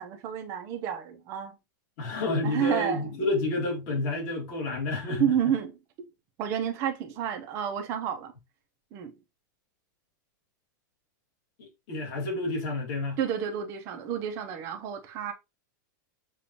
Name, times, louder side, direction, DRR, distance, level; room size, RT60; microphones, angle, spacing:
voice 1, 0.0-1.5 2.4-3.1 5.2-6.1 6.4-8.3 8.9-9.1 13.2-15.3, right 9 dB, 25° right, 0.7 m, -30 dB
voice 2, 2.0-5.3 11.6-13.2, left 2 dB, 35° left, 1.9 m, -30 dB
6.9 x 2.6 x 2.8 m
supercardioid pair, 175°, 10 cm